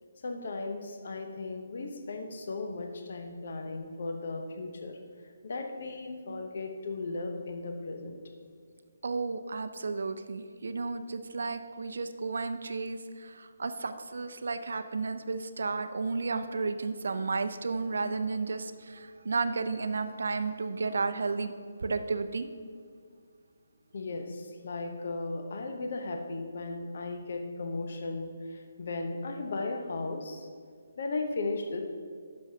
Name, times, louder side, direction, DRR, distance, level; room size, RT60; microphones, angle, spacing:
voice 1, 0.2-5.0 5.4-8.5 23.9-30.5 31.0-31.8, left 3 dB, 55° left, 4 dB, 0.8 m, -36 dB
voice 2, 9.0-21.5 21.8-22.5, right 4 dB, 65° right, 10 dB, 0.5 m, -33 dB
11.0 x 6.4 x 2.8 m, 2.1 s
figure-of-eight pair, 145°, 0 cm